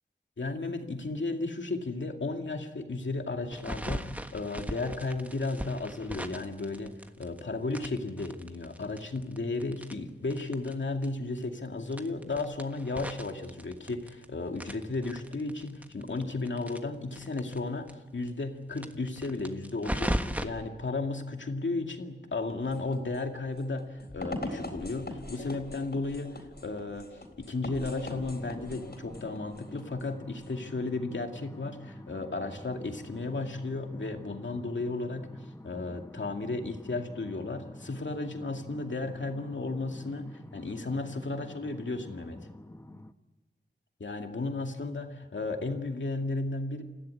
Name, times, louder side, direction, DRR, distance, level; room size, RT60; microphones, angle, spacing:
voice 1, 0.4-17.9 18.1-42.4 44.0-46.8, left 3 dB, 80° left, 4 dB, 2.3 m, -34 dB
sound 1, 3.5-7.4 7.7-10.7 11.0-11.1 11.4-11.5 11.9-14.3 14.6-17.6 17.9-18.0 18.2-18.3 18.7-20.4, equal, 10° right, 1.5 m, -37 dB
sound 2, 22.4-30.6, left 2 dB, 60° left, 4.0 m, -42 dB
sound 3, 28.1-43.1, left 1 dB, 15° left, 1.1 m, -48 dB
29.0 x 15.0 x 9.6 m, 1.1 s
wide cardioid pair, 65°, 19 cm